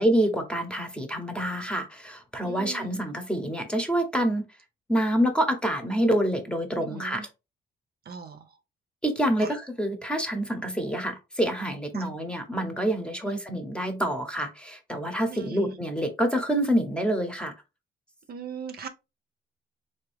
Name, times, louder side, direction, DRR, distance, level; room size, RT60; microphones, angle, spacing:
voice 1, 0.0-4.4 4.9-7.2 9.0-17.5, right 1 dB, 5° left, 0.9 m, -27 dB
voice 2, 2.4-3.0 6.7-7.3 8.1-8.5 9.4-9.5 11.9-12.1 13.2-13.3 15.3-15.8 18.3-18.9, right 6 dB, 50° right, 0.6 m, -39 dB
3.4 x 2.7 x 3.4 m
cardioid pair, 90°, 20 cm